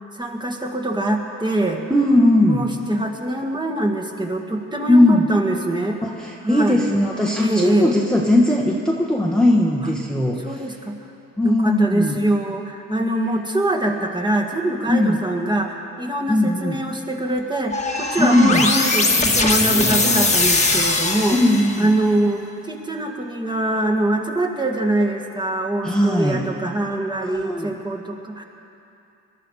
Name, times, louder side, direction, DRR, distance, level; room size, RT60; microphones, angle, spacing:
voice 1, 0.1-1.8 2.5-6.0 6.4-6.8 7.4-8.0 9.8-9.9 10.4-11.0 11.4-21.4 21.8-28.4, right 1 dB, 15° right, 2 dB, 1.8 m, -23 dB
voice 2, 1.9-2.7 4.9-5.3 6.0-10.7 11.4-12.2 14.9-15.2 16.3-16.8 18.2-18.7 21.3-21.9 25.8-26.4 27.2-27.7, left 1 dB, 5° left, -2 dB, 1.3 m, -18 dB
sound 1, 17.7-22.0, left 3 dB, 25° left, 1.5 m, -20 dB
22.0 x 12.0 x 4.9 m, 2.8 s
cardioid pair, 90°, 30 cm